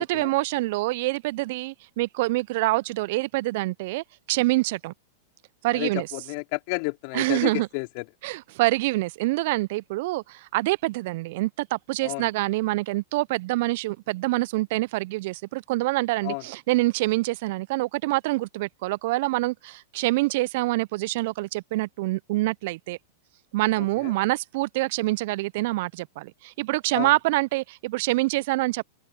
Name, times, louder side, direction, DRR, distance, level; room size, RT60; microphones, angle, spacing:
voice 1, 0.0-4.9 5.6-6.1 7.1-7.7 8.2-23.0 23.5-28.8, right 20 dB, 55° right, 0.8 m, -26 dB
voice 2, 5.7-8.0 12.0-12.2 16.2-16.4 24.0-24.1 26.9-27.1, left 35 dB, 50° left, 4.2 m, -31 dB
open air
figure-of-eight pair, 95°, 0 cm